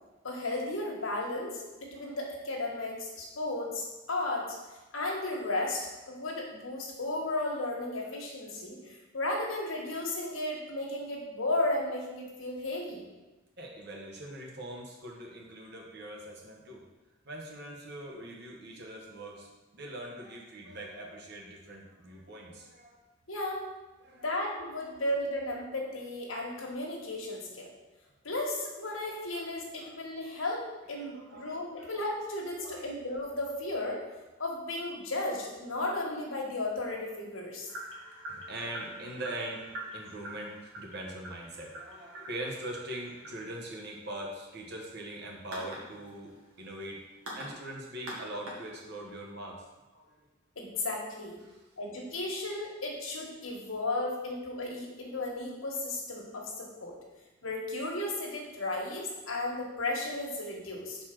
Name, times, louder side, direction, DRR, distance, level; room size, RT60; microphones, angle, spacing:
voice 1, 0.2-4.5 4.9-5.8 6.1-13.1 23.3-23.6 24.2-27.7 28.2-34.0 34.4-37.7 50.5-51.4 51.8-56.9 57.4-61.0, left 2 dB, 85° left, -1 dB, 1.5 m, -34 dB
voice 2, 13.6-16.8 17.2-19.5 19.7-23.0 24.0-24.2 29.3-29.4 29.8-29.9 31.0-31.5 31.8-31.9 32.6-32.9 38.3-46.3 46.6-47.0 47.3-49.6 49.9-50.2, right 1 dB, 55° right, -1 dB, 1.3 m, -42 dB
sound 1, 37.7-49.2, right 1 dB, 90° right, 1.9 m, -46 dB
4.9 x 4.2 x 5.9 m, 1.1 s
head